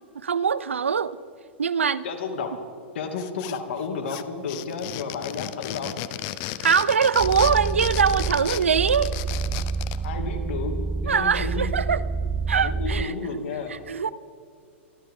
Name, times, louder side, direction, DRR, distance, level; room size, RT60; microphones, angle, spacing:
voice 1, 0.1-1.2 1.6-2.0 6.6-9.1 11.1-12.0 12.5-13.1 13.7-14.1, right 6 dB, 90° right, 17 dB, 0.7 m, -22 dB
voice 2, 2.0-2.6 2.9-6.0 10.0-11.7 12.6-13.8, left 4 dB, 70° left, 5 dB, 2.6 m, -32 dB
sound 1, 3.2-3.8 4.1-10.0, left 15 dB, 50° left, 0.8 m, -34 dB
sound 2, 7.2-13.1, right 5 dB, 15° right, 0.4 m, -28 dB
26.0 x 13.5 x 3.8 m, 2.3 s
hypercardioid pair, 110°, 7 cm